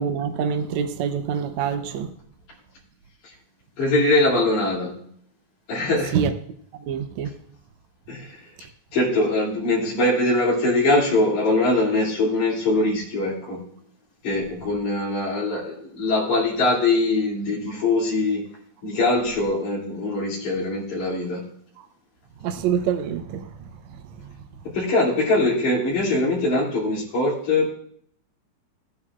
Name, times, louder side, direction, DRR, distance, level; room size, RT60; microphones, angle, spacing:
voice 1, 0.0-2.1 6.1-6.3 6.9-7.3 22.4-23.7 24.2-24.3, right 7 dB, 75° right, 2.0 m, -25 dB
voice 2, 3.8-5.0 5.7-6.2 8.1-8.5 8.9-13.6 14.2-18.4 18.8-21.4 24.6-27.7, left 2 dB, 75° left, 4.1 m, -22 dB
15.5 x 9.4 x 2.4 m
omnidirectional pair, 3.5 m